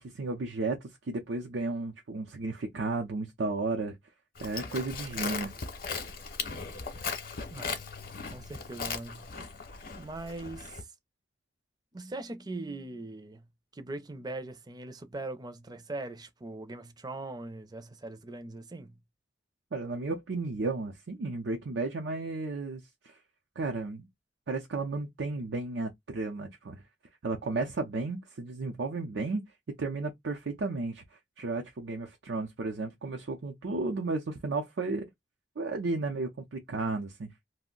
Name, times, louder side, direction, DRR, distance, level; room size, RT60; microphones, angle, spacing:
voice 1, 0.0-4.0 4.4-5.5 19.7-23.2 23.6-24.1 24.5-26.8 27.2-29.4 29.8-35.1 35.6-37.3, right 3 dB, 90° right, 0.6 m, -33 dB
Livestock farm animals working animals, 4.4-10.8, left 5 dB, 55° left, 0.7 m, -38 dB
voice 2, 7.5-7.8 8.3-9.4 10.0-10.9 11.9-13.5 13.7-19.0, right 2 dB, 25° right, 0.5 m, -41 dB
2.5 x 2.1 x 3.7 m
head